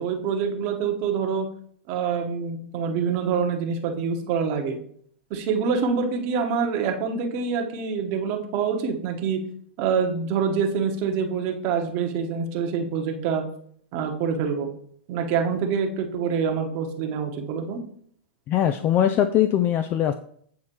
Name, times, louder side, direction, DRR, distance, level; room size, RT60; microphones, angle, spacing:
voice 1, 0.0-1.5 1.9-4.8 5.3-9.4 9.8-13.4 13.9-14.7 15.1-17.8, right 6 dB, 45° right, 4 dB, 1.1 m, -26 dB
voice 2, 18.5-20.1, left 10 dB, 35° left, 9 dB, 0.3 m, -21 dB
8.3 x 4.2 x 3.0 m, 0.62 s
hypercardioid pair, 110°, 6 cm